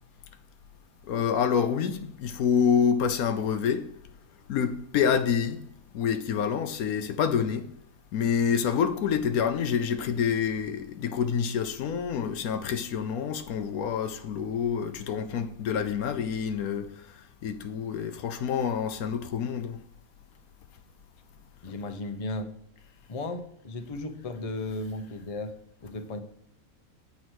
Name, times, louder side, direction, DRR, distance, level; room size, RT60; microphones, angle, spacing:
voice 1, 1.0-3.9 4.5-5.7 5.9-7.7 8.1-19.8, left 7 dB, 80° left, 1.1 m, -27 dB
voice 2, 21.6-22.5 23.1-26.2, left 2 dB, 35° left, 0.6 m, -35 dB
8.5 x 4.8 x 6.2 m
omnidirectional pair, 1.6 m